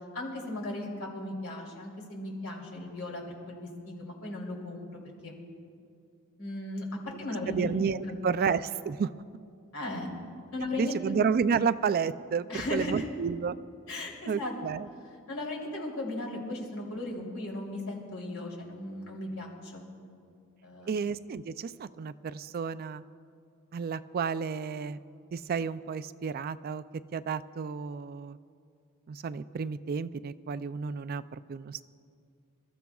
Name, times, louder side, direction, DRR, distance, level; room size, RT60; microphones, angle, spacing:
voice 1, 0.1-5.3 6.4-6.8 7.2-7.7 8.0-8.5 9.7-10.1 10.5-11.2 12.5-13.1 13.9-14.5 15.3-19.8 20.6-21.1, left 1 dB, 80° left, -1 dB, 3.1 m, -37 dB
voice 2, 7.5-9.1 10.8-13.6 14.3-14.9 20.9-23.0 23.7-25.0 25.3-26.8 27.1-28.4 29.1-31.8, right 6 dB, 45° right, 14 dB, 0.3 m, -31 dB
27.0 x 14.0 x 2.4 m, 2.4 s
head